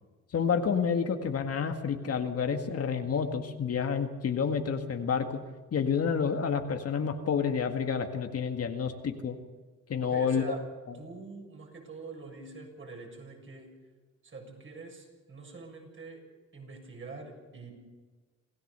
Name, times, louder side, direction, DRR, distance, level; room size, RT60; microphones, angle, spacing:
voice 1, 0.3-5.4 5.7-9.4 9.9-10.6, left 6 dB, 50° left, 5 dB, 2.0 m, -29 dB
voice 2, 10.0-10.6 11.0-13.7 14.2-16.2 16.5-17.7, right 3 dB, 40° right, 1 dB, 7.3 m, -45 dB
27.5 x 16.0 x 6.9 m, 1.3 s
cardioid pair, 90°, 30 cm